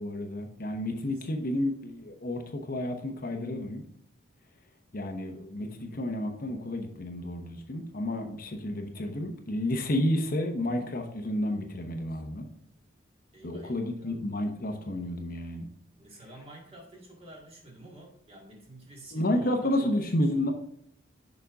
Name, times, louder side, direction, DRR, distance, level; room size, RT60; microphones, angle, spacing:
voice 1, 0.0-3.8 4.9-12.5 13.4-15.7 19.1-20.5, left 1 dB, 50° left, 4 dB, 0.9 m, -31 dB
voice 2, 1.1-1.7 13.3-14.2 16.0-20.1 20.4-20.5, right 1 dB, 30° right, -1 dB, 1.9 m, -50 dB
7.0 x 5.3 x 3.6 m, 0.71 s
head